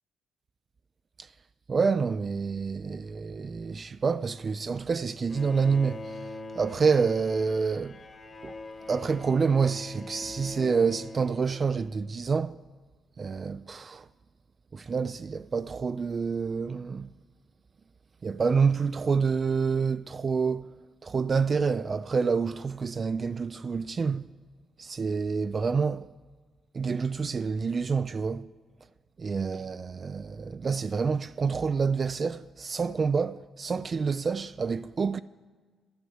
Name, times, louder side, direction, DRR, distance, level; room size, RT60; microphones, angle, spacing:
voice 1, 1.7-8.0 8.4-8.6 8.9-12.6 13.2-14.1 14.7-17.1 18.2-20.7 21.0-24.3 24.8-26.1 26.7-28.5 29.2-35.2, right 5 dB, 40° right, 0.3 m, -28 dB
Bowed string instrument, 5.3-12.1, left 2 dB, 30° left, 1.3 m, -43 dB
11.5 x 9.8 x 7.9 m
cardioid pair, 90°, 0 cm